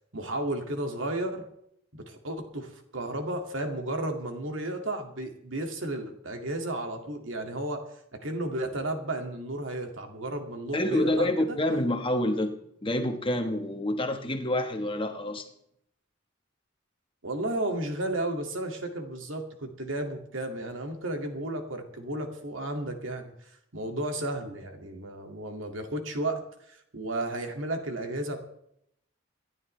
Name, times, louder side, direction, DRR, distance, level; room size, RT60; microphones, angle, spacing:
voice 1, 0.1-1.4 1.9-7.8 8.2-11.6 17.2-23.3 23.7-26.4 26.7-28.4, right 1 dB, 80° right, 4 dB, 2.2 m, -33 dB
voice 2, 10.7-12.6 12.8-15.4, left 1 dB, 25° left, 5 dB, 1.3 m, -27 dB
26.0 x 11.0 x 3.3 m, 0.74 s
head